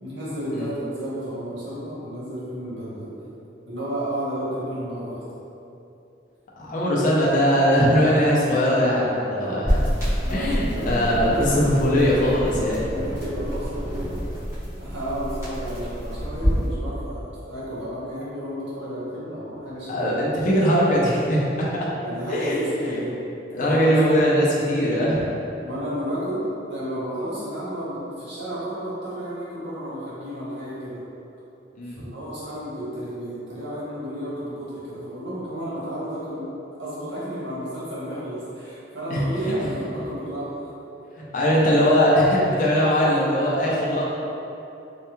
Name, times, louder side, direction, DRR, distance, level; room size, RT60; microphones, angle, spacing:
voice 1, 0.0-3.1 3.7-5.2 9.4-9.6 10.2-12.3 12.9-14.2 14.8-20.2 22.0-23.2 23.6-24.2 25.6-26.4 26.7-31.0 32.0-36.5 36.8-40.6 42.7-42.9, equal, 90° right, -9 dB, 1.1 m, -32 dB
voice 2, 6.6-9.8 10.3-12.8 19.9-21.7 22.3-22.6 22.9-23.0 23.5-25.3 31.8-32.1 39.1-39.5 41.3-44.0, equal, 45° left, -6 dB, 0.5 m, -20 dB
sound 1, 9.6-16.7, equal, 15° right, 1.3 m, -27 dB
3.2 x 2.3 x 2.9 m, 2.8 s
head